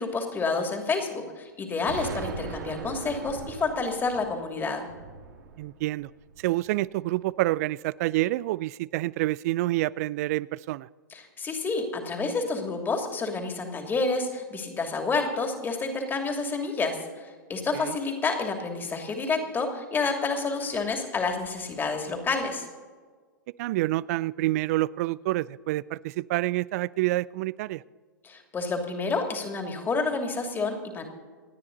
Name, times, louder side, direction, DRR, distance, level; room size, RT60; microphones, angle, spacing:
voice 1, 0.0-4.9 11.1-22.7 28.2-31.0, left 4 dB, 20° left, 4 dB, 2.8 m, -29 dB
Explosion, 1.9-6.7, right 5 dB, 70° right, 2.0 m, -40 dB
voice 2, 5.6-6.1 6.4-10.9 17.7-18.0 23.6-27.8, right 17 dB, 50° right, 22 dB, 0.4 m, -28 dB
28.0 x 9.8 x 4.1 m, 1.6 s
hypercardioid pair, 105°, 11 cm